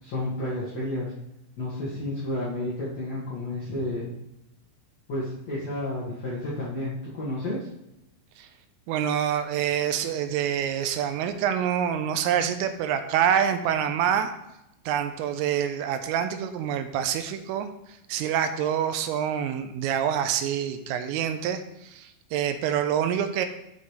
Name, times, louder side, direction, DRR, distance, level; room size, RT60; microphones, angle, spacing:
voice 1, 0.0-1.1 1.6-4.1 5.1-7.7, left 1 dB, 60° left, -8 dB, 1.8 m, -31 dB
voice 2, 8.9-14.3 14.9-17.7 18.1-23.5, right 9 dB, 85° right, 8 dB, 3.2 m, -26 dB
12.5 x 5.4 x 3.3 m, 0.88 s
omnidirectional pair, 5.8 m